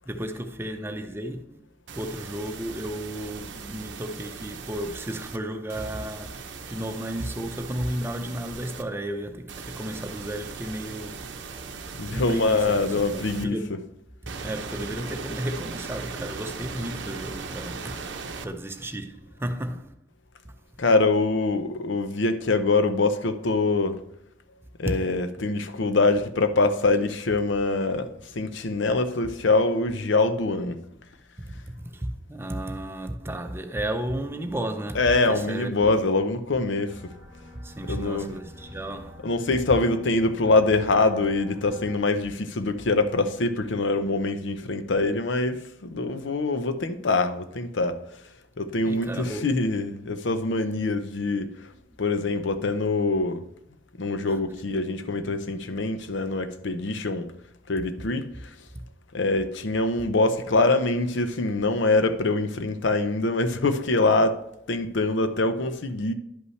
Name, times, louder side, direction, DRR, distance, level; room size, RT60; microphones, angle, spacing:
voice 1, 0.1-1.6 1.9-11.2 12.1-13.8 14.4-19.9 20.4-20.5 24.9-25.1 31.5-36.0 37.6-39.2 48.8-49.6 54.3-54.4, right 1 dB, 15° right, 0.6 m, -33 dB
sound 1, 1.9-5.4 5.7-8.8 9.5-13.4 14.3-18.5, right 4 dB, 80° right, 0.7 m, -38 dB
voice 2, 12.0-13.6 20.8-24.0 24.8-28.1 28.4-30.8 34.9-37.0 37.9-38.3 39.2-48.0 48.6-51.5 52.0-53.4 54.0-57.3 57.7-58.3 59.1-64.4 64.7-66.1, left 3 dB, 85° left, 0.7 m, -24 dB
sound 2, 36.9-42.0, left 1 dB, 5° left, 2.3 m, -47 dB
11.0 x 5.5 x 3.2 m
head